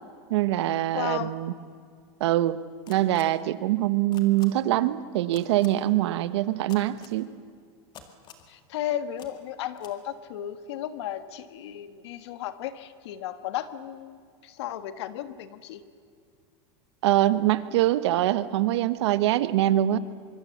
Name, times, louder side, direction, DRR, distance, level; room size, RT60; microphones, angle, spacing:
voice 1, 0.3-1.5 2.2-2.6 2.9-7.3 17.0-20.0, right 14 dB, 75° right, 14 dB, 1.1 m, -24 dB
voice 2, 0.9-1.3 8.5-15.8, left 11 dB, 70° left, 11 dB, 1.5 m, -34 dB
sound 1, 2.9-3.2 4.1-4.5 5.3-5.7 6.7-7.1 7.9-8.5 9.2-9.3 9.8-9.9, left 9 dB, 30° left, 2.0 m, -47 dB
24.5 x 23.0 x 7.3 m, 2.1 s
supercardioid pair, 155°, 14 cm